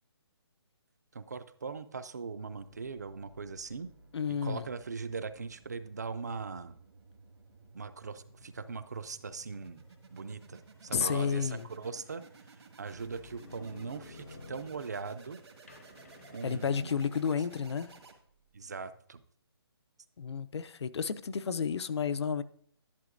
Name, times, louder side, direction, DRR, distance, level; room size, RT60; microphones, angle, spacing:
voice 1, 1.1-3.9 4.3-6.8 7.7-9.8 10.1-15.4 16.3-17.0 18.5-19.2, right 4 dB, 40° right, 0.3 m, -40 dB
sound 1, 2.5-18.6, right 3 dB, 80° right, 1.6 m, -56 dB
voice 2, 4.1-4.7 10.9-11.7 16.4-17.9 20.2-22.4, left 6 dB, 90° left, 0.5 m, -31 dB
sound 2, 10.4-10.6 11.0-12.3 12.9-15.3 15.7-17.5, left 4 dB, 30° left, 0.4 m, -51 dB
11.0 x 7.7 x 2.5 m
hypercardioid pair, 180°, 14 cm